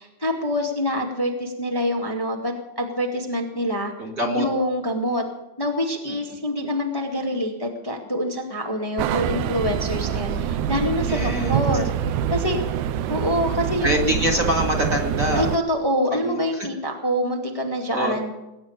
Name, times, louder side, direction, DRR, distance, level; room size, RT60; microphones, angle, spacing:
voice 1, 0.0-3.9 4.4-5.2 5.6-11.9 12.3-12.6 13.1-13.9 15.3-18.5, equal, 35° left, 1 dB, 0.3 m, -26 dB
voice 2, 4.0-4.5 11.1-11.6 13.8-15.5 16.1-16.7 17.9-18.1, equal, 30° right, 3 dB, 1.7 m, -24 dB
sound 1, 9.0-15.6, right 9 dB, 80° right, 1.9 m, -25 dB
20.5 x 9.2 x 6.7 m, 0.98 s
omnidirectional pair, 4.5 m